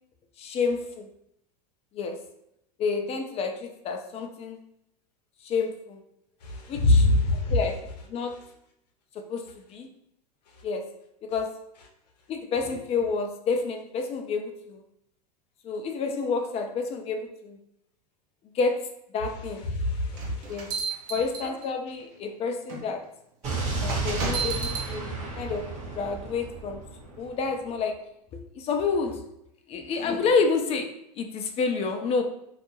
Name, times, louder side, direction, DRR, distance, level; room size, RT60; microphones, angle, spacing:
voice 1, 0.4-1.1 1.9-2.2 2.8-4.6 5.4-6.0 6.7-7.1 7.5-7.8 8.1-8.4 9.1-9.9 10.6-10.9 11.2-11.6 12.3-14.8 15.6-17.6 18.5-19.7 20.5-20.7 21.1-23.0 23.8-25.7 25.9-26.8 27.2-28.0 28.3-29.2 29.7-30.9 31.2-32.2, left 4 dB, 30° left, 5 dB, 0.4 m, -29 dB
voice 2, 6.4-7.6 19.6-20.7 23.5-23.6, left 2 dB, 75° left, 1 dB, 0.7 m, -24 dB
sound 1, 20.1-21.9 22.7-22.8 23.9-24.9, right 5 dB, 65° right, 0.6 m, -32 dB
Explosion, 23.4-27.5, right 3 dB, 35° right, 0.8 m, -32 dB
2.3 x 2.1 x 3.0 m, 0.77 s
hypercardioid pair, 95°, 21 cm